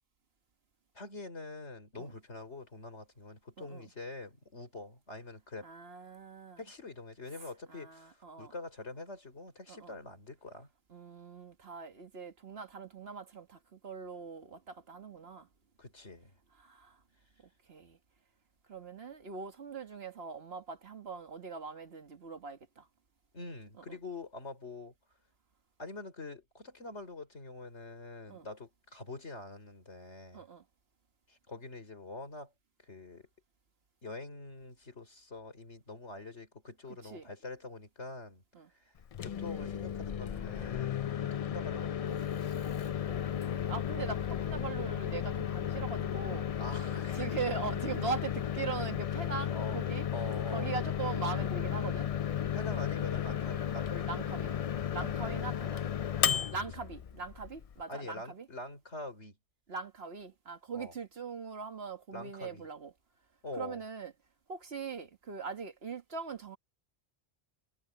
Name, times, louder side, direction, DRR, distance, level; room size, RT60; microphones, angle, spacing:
voice 1, 0.9-5.7 6.6-10.7 15.8-16.3 23.3-24.9 25.8-30.4 31.3-32.5 32.8-33.3 34.0-38.4 39.2-42.6 46.6-47.4 49.5-49.8 50.1-50.7 52.5-54.3 55.0-55.4 56.3-56.5 57.9-59.4 60.7-60.9 62.1-62.7 63.4-63.8, left 2 dB, 85° left, 4.6 m, -45 dB
voice 2, 3.6-3.9 5.6-6.6 7.7-8.5 9.7-9.9 10.9-15.5 16.6-17.0 17.7-18.0 18.7-22.9 23.8-24.0 28.3-28.5 30.3-30.6 37.0-37.3 38.5-38.7 43.1-46.5 47.1-50.1 50.5-52.1 53.3-53.6 54.1-54.6 54.9-55.9 56.5-58.5 59.7-62.9 63.6-64.1 64.5-66.6, right 5 dB, 65° right, 1.8 m, -41 dB
Microwave oven, 39.0-57.8, left 9 dB, 55° left, 0.4 m, -34 dB
omnidirectional pair, 1.1 m